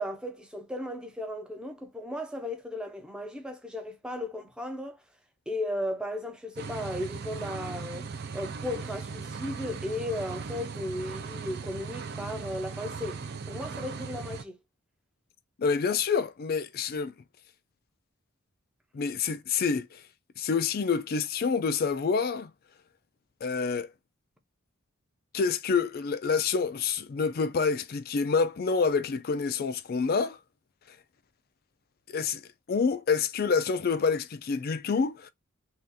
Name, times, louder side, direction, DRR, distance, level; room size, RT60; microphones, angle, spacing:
voice 1, 0.0-5.0 5.5-14.6, left 1 dB, 5° right, 0.5 m, -35 dB
sound 1, 6.6-14.4, right 5 dB, 50° right, 0.4 m, -38 dB
voice 2, 15.6-17.1 18.9-20.0 20.4-22.5 23.4-23.9 25.3-30.4 32.1-32.4 32.7-35.3, left 5 dB, 45° left, 0.4 m, -27 dB
2.7 x 2.4 x 3.5 m
head